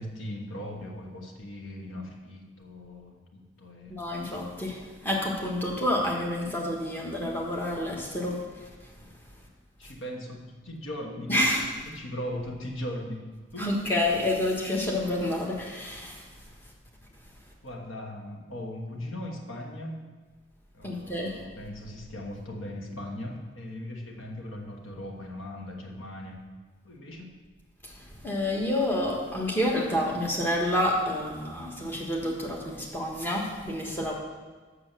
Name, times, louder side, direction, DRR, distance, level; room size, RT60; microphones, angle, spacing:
voice 1, 0.0-4.0 9.8-11.3 11.8-13.3 13.5-13.7 17.6-20.0 20.7-26.4 26.8-27.3, left 1 dB, 85° left, 2 dB, 1.3 m, -39 dB
voice 2, 3.9-8.9 9.8-9.9 11.3-11.7 13.6-16.3 20.8-21.4 27.8-34.1, left 1 dB, 10° left, -3 dB, 1.3 m, -29 dB
7.3 x 6.6 x 6.7 m, 1.4 s
head